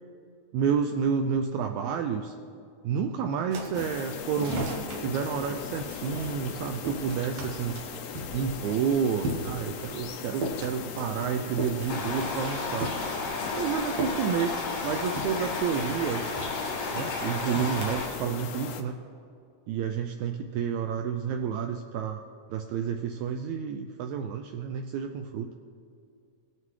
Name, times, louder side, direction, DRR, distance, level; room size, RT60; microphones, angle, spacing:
voice 1, 0.5-2.3 2.8-7.8 8.3-12.9 13.6-14.5 14.8-16.2 16.9-18.9 19.7-22.2 22.5-25.5, right 7 dB, 85° right, 5 dB, 1.6 m, -30 dB
sound 1, 3.5-18.2, right 1 dB, 60° right, 2.1 m, -39 dB
sound 2, 3.7-18.8, left 7 dB, 85° left, 1.5 m, -39 dB
sound 3, 11.9-18.1, left 3 dB, 60° left, 3.5 m, -33 dB
18.5 x 7.6 x 3.1 m, 2.5 s
omnidirectional pair, 3.8 m